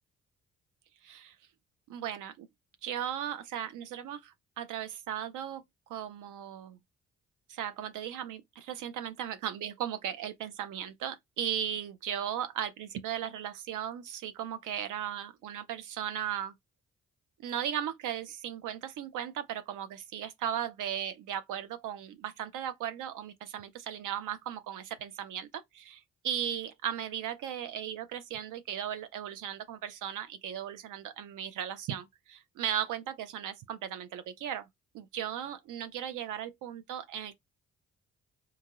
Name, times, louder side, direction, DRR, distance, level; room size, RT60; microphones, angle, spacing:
voice 1, 1.0-1.4 1.9-2.5 2.8-5.6 5.9-6.8 7.5-16.5 17.4-34.7 34.9-37.3, right 10 dB, 60° right, 0.5 m, -37 dB
2.8 x 2.7 x 2.3 m
hypercardioid pair, 40°, 36 cm